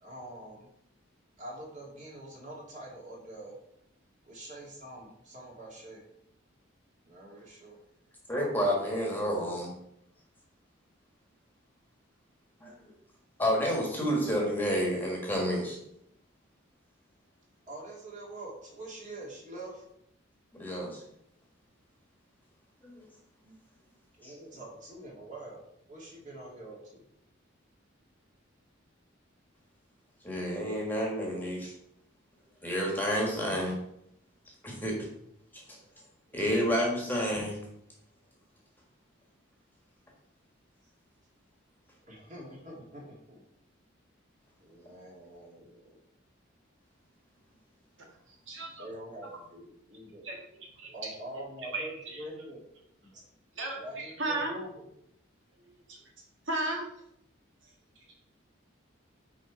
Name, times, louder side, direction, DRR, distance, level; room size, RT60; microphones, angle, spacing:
voice 1, 0.0-0.7 1.4-3.5 4.2-6.0 7.1-7.8 17.7-19.8 24.2-25.6 25.9-27.0 42.0-43.4 44.6-45.9 48.8-50.3 50.9-52.6 53.1-53.2 53.7-54.9, right 1 dB, 35° right, -3 dB, 2.1 m, -45 dB
voice 2, 8.3-9.7 12.6-12.7 13.4-15.8 20.5-21.0 22.8-22.9 24.2-24.3 30.2-31.7 32.6-33.8 34.6-35.0 36.3-37.6, equal, 10° left, -2 dB, 1.6 m, -29 dB
voice 3, 48.5-48.9 50.2-50.4 50.8-50.9 51.7-51.9 53.6-54.5 55.9-56.0 56.5-56.8, right 2 dB, 70° right, -1 dB, 1.7 m, -33 dB
6.3 x 4.8 x 4.4 m, 0.77 s
head